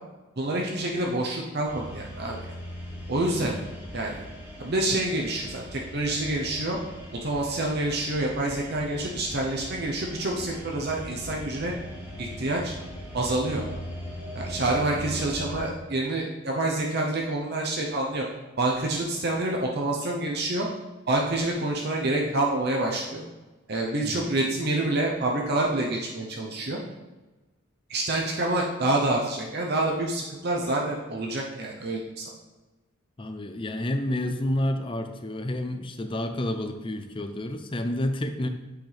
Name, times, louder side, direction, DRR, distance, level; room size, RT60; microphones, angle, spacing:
voice 1, 0.4-2.4 3.1-3.5 3.9-4.2 4.6-6.8 7.2-11.7 12.2-12.7 13.1-13.6 14.3-18.2 18.6-20.7 21.1-23.2 23.7-26.8 27.9-32.2, right 2 dB, 50° right, -1 dB, 0.9 m, -27 dB
sound 1, 1.7-15.7, equal, 10° right, 2.4 m, -40 dB
voice 2, 33.2-38.5, left 1 dB, 25° left, 7 dB, 0.6 m, -30 dB
7.9 x 6.0 x 3.4 m, 1.2 s
head